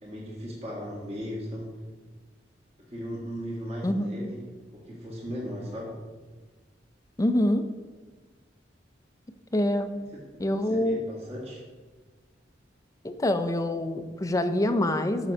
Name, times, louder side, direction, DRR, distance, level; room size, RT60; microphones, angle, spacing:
voice 1, 0.0-1.8 2.8-6.0 10.1-10.3 10.7-11.6, equal, 35° right, -5 dB, 1.9 m, -37 dB
voice 2, 3.8-4.3 7.2-7.7 9.5-9.9 10.4-11.0 13.0-15.3, left 1 dB, 20° left, 9 dB, 0.5 m, -25 dB
6.8 x 6.0 x 5.4 m, 1.3 s
head